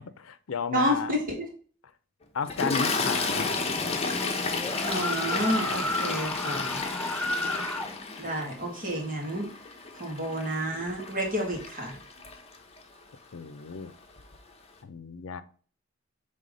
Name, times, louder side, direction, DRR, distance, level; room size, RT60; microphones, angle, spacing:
voice 1, 0.2-1.2 2.3-3.5 13.3-13.9 14.8-15.4, left 5 dB, 90° left, 13 dB, 0.5 m, -33 dB
voice 2, 0.7-1.4 4.8-6.8 8.2-9.5 10.0-12.0, equal, 45° right, -1 dB, 2.0 m, -30 dB
Toilet flush, 2.5-12.8 13.7-13.9 14.2-14.4, left 3 dB, 30° left, 0.9 m, -32 dB
sound 1, 4.5-7.9, left 1 dB, 5° left, 0.3 m, -32 dB
5.6 x 3.4 x 5.2 m, 0.43 s
head